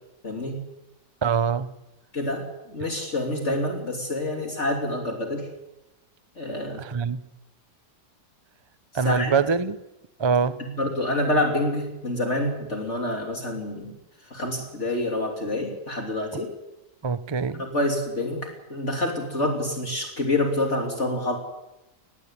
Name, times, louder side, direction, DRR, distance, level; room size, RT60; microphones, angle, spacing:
voice 1, 0.2-0.7 2.1-5.5 6.4-6.8 9.0-9.3 10.6-13.9 14.3-16.5 17.7-21.4, left 1 dB, 45° left, 3.3 m, -27 dB
voice 2, 1.2-1.7 6.8-7.2 8.9-9.8 10.2-10.6 17.0-17.6, right 5 dB, 40° right, 0.4 m, -24 dB
20.5 x 15.0 x 9.9 m
omnidirectional pair, 1.7 m